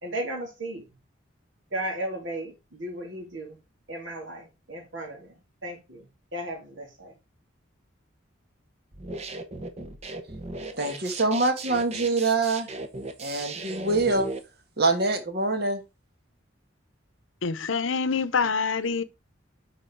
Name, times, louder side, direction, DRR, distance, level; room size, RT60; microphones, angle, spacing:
voice 1, 0.0-0.8 1.7-3.6 3.9-7.1, right 1 dB, 75° right, 2.7 m, -35 dB
sound 1, 8.9-14.4, right 2 dB, 35° right, 0.8 m, -37 dB
voice 2, 10.7-12.7 13.2-14.3 14.8-15.8, right 3 dB, 55° right, 1.4 m, -25 dB
voice 3, 17.4-19.0, left 5 dB, 80° left, 0.7 m, -26 dB
6.3 x 5.1 x 4.6 m
head